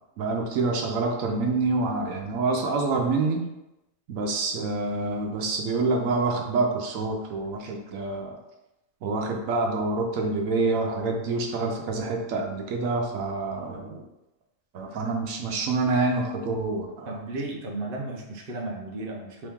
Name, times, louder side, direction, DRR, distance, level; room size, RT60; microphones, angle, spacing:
voice 1, 0.2-3.4 4.1-8.4 9.0-14.1 14.7-17.1, right 3 dB, 85° right, 2 dB, 1.0 m, -27 dB
voice 2, 17.1-19.5, right 2 dB, 50° right, -1 dB, 0.8 m, -34 dB
3.6 x 3.0 x 3.5 m, 0.97 s
omnidirectional pair, 1.4 m